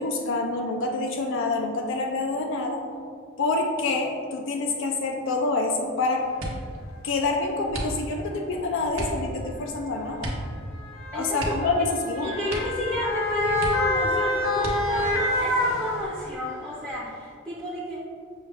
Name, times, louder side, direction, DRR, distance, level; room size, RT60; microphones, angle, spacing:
voice 1, 0.0-2.8 3.4-6.3 7.0-10.3 11.1-12.3, left 3 dB, 65° left, 2 dB, 0.4 m, -27 dB
sound 1, 6.3-6.8 7.7-8.3 8.9-9.2 10.2-10.5 10.8-10.9 11.3-12.1 12.4-12.9 13.2-13.3 13.6-14.1 14.6-15.1 15.8-16.4 16.8-17.2, right 1 dB, 80° right, 0.8 m, -34 dB
Motor vehicle (road) / Siren, 6.5-6.6 7.6-7.8 8.9-16.5 16.9-17.0, left 2 dB, 80° left, 0.8 m, -28 dB
voice 2, 11.1-11.7 12.2-18.0, equal, 10° right, -8 dB, 0.6 m, -31 dB
6.3 x 2.3 x 3.4 m, 2.1 s
head